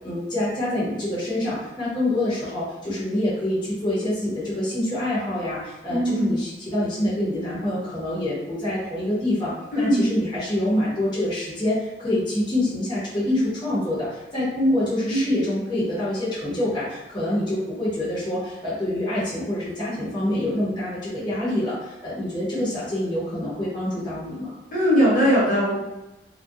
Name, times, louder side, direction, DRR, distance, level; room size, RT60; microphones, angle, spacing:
voice 1, 0.0-24.6, left 1 dB, 25° left, -9 dB, 0.8 m, -26 dB
voice 2, 5.9-6.4 9.7-10.0 15.1-15.2 24.7-25.8, equal, 50° left, -6 dB, 0.9 m, -20 dB
2.3 x 2.2 x 2.6 m, 1.0 s
head